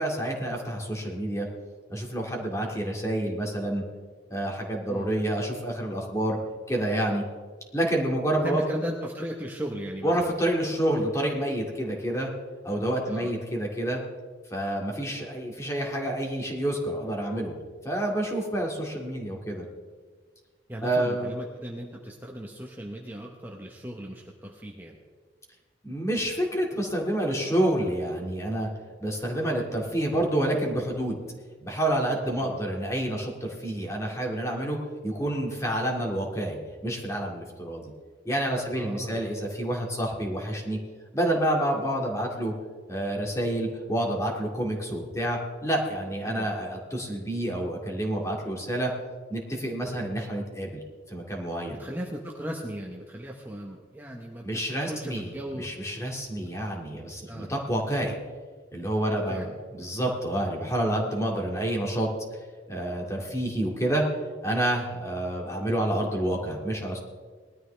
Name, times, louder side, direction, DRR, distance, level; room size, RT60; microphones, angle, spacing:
voice 1, 0.0-1.5 1.9-3.8 4.3-6.4 6.7-7.2 7.7-8.6 10.0-12.3 12.6-14.0 14.5-17.5 17.8-19.6 20.8-21.3 25.8-28.7 29.0-31.2 31.6-34.8 35.0-37.9 38.2-40.8 41.1-42.5 42.9-48.9 49.3-51.8 54.4-58.2 58.7-62.1 62.7-64.1 64.4-67.0, right 1 dB, 15° left, -1 dB, 2.3 m, -28 dB
voice 2, 8.4-10.1 13.1-13.3 20.7-25.0 32.4-32.5 38.7-39.2 46.3-46.5 51.8-55.7 57.3-57.5 59.1-59.5, equal, 10° right, -1 dB, 1.0 m, -37 dB
20.0 x 13.0 x 3.4 m, 1.5 s
head